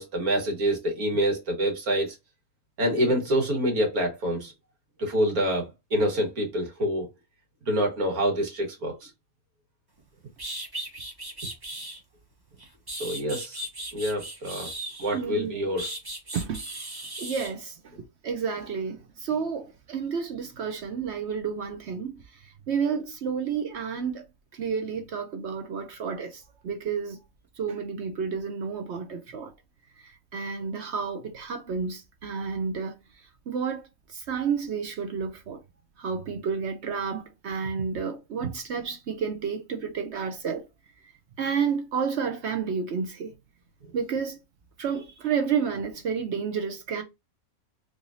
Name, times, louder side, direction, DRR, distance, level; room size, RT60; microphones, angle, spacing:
voice 1, 0.0-2.2 2.8-4.5 5.0-7.1 7.7-9.1 13.0-13.6 13.9-14.7 15.0-15.9, equal, 85° right, 2.0 m, -26 dB
sound 1, 10.0-10.1 10.4-12.0 12.6-15.2 15.8-17.5, right 1 dB, 20° right, 0.8 m, -37 dB
voice 2, 15.1-15.6 16.3-16.9 17.2-17.9 18.2-22.1 22.7-24.3 24.5-27.2 27.6-29.5 30.0-32.9 33.5-33.8 34.1-35.6 36.0-40.7 41.4-43.3 43.9-44.4 44.8-47.0, right 6 dB, 60° right, 0.8 m, -30 dB
3.7 x 3.2 x 2.6 m
omnidirectional pair, 1.5 m